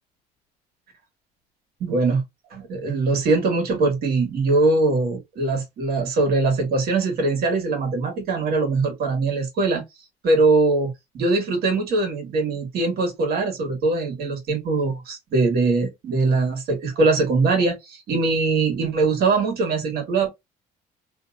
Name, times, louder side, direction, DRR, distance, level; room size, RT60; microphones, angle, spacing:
voice 1, 1.8-2.2 2.5-9.8 10.2-20.3, right 3 dB, 65° right, 1.7 m, -22 dB
2.8 x 2.7 x 2.4 m
cardioid pair, 110°, 17 cm